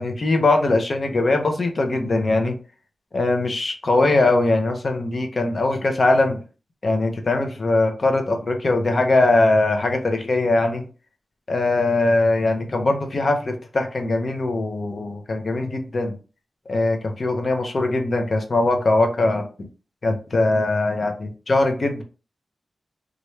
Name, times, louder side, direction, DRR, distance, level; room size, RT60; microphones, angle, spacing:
voice 1, 0.0-2.6 3.1-6.4 6.8-10.9 11.5-16.1 16.7-19.5 20.0-22.0, left 2 dB, 55° left, 5 dB, 0.7 m, -21 dB
3.1 x 2.5 x 3.1 m, 0.35 s
cardioid pair, 50°, 0 cm